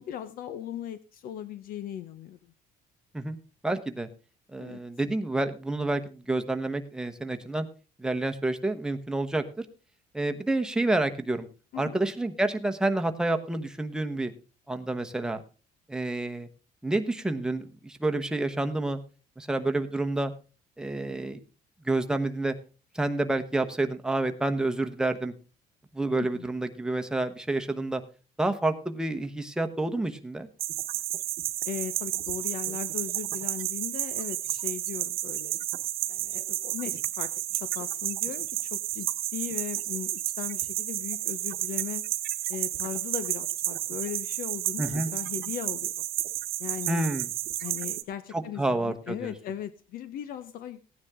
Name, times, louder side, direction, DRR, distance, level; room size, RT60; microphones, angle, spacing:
voice 1, 0.0-2.5 4.6-4.8 11.7-12.0 26.2-26.5 31.6-35.6 36.1-42.1 42.5-46.1 46.6-47.0 47.6-50.8, left 10 dB, 65° left, 13 dB, 0.8 m, -38 dB
voice 2, 3.6-4.1 4.5-7.7 8.0-9.7 10.1-11.5 11.8-14.3 14.7-15.4 15.9-16.5 16.8-19.0 19.4-20.3 20.8-21.4 21.8-22.5 22.9-25.3 25.9-28.0 28.4-30.5 44.8-45.1 46.9-47.3 48.3-49.3, right 2 dB, 5° right, 6 dB, 1.0 m, -29 dB
sound 1, 30.6-48.0, right 14 dB, 70° right, 1.0 m, -32 dB
16.0 x 9.6 x 3.6 m, 0.33 s
cardioid pair, 145°, 16 cm